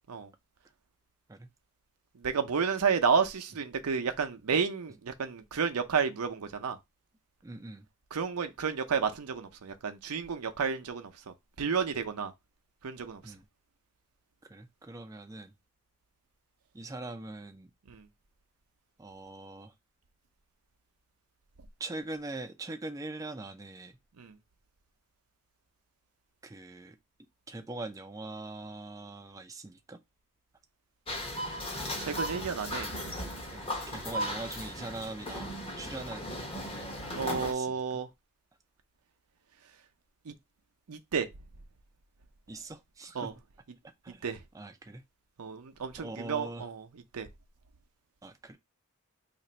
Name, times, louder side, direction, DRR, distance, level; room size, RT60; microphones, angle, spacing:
voice 1, 2.2-6.8 8.1-12.3 12.8-13.2 17.9-18.1 24.2-24.3 32.0-32.9 37.2-38.1 40.3-40.4 40.9-41.3 43.1-43.3 44.2-44.4 45.4-46.9 47.1-47.3, right 6 dB, 85° right, 0.6 m, -31 dB
voice 2, 7.4-7.9 13.2-13.5 14.5-15.5 16.7-17.7 19.0-19.7 21.8-23.9 26.4-27.0 27.5-30.0 33.5-36.3 37.2-37.8 42.5-43.3 44.0-44.3 44.5-45.0 46.0-46.7 48.2-48.6, right 2 dB, 15° right, 0.3 m, -42 dB
sound 1, 31.1-37.5, equal, 25° left, 0.8 m, -36 dB
2.9 x 2.5 x 4.2 m
head